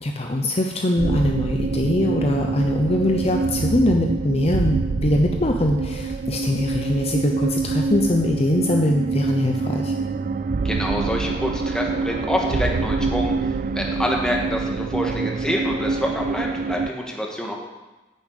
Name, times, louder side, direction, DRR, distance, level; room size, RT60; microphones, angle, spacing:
voice 1, 0.0-9.9, left 1 dB, 35° left, 2 dB, 0.8 m, -22 dB
sound 1, 1.0-16.9, right 4 dB, 45° right, 0.4 m, -25 dB
voice 2, 10.6-13.3 13.7-17.5, equal, 5° left, -1 dB, 1.8 m, -26 dB
9.9 x 7.1 x 8.3 m, 1.1 s
head